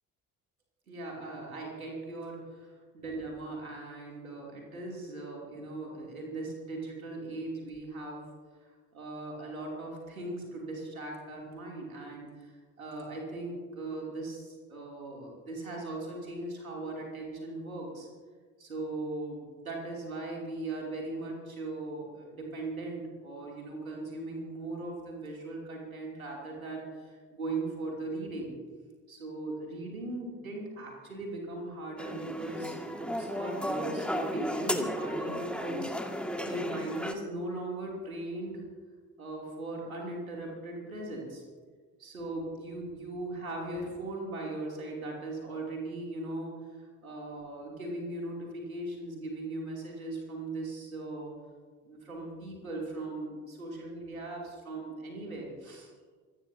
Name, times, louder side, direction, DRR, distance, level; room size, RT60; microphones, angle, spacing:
voice 1, 0.9-8.2 8.9-12.5 12.8-18.1 18.6-28.5 29.1-35.9 36.4-38.6 39.2-41.4 42.0-51.3 51.8-55.9, right 2 dB, 85° right, -2 dB, 2.9 m, -39 dB
sound 1, 32.0-37.1, equal, 5° left, 1.9 m, -34 dB
25.5 x 18.5 x 2.8 m, 1.5 s
figure-of-eight pair, 45°, 41 cm